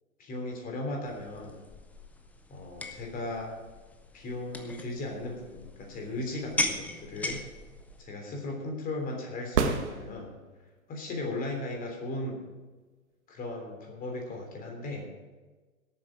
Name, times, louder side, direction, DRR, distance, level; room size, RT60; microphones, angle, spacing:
voice 1, 0.2-1.6 2.5-3.5 4.1-7.4 8.0-10.3 10.9-12.4 13.3-15.1, left 2 dB, 20° left, 2 dB, 3.4 m, -36 dB
sound 1, 1.1-8.0, left 2 dB, 5° left, 0.5 m, -38 dB
sound 2, 9.4-10.7 14.6-14.7, right 6 dB, 55° right, 1.5 m, -29 dB
17.5 x 8.7 x 5.0 m, 1.3 s
figure-of-eight pair, 110°, 41 cm